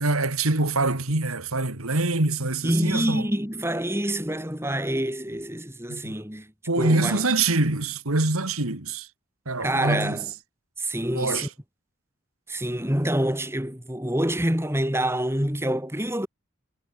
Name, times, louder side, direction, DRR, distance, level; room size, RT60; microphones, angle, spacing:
voice 1, 0.0-3.3 5.9-6.2 6.7-9.1 9.4-10.2 11.1-11.5, right 2 dB, 90° right, 2.8 m, -25 dB
voice 2, 2.6-6.5 6.8-7.2 9.6-10.3 10.8-11.5 12.5-16.3, right 1 dB, 10° right, 5.2 m, -26 dB
head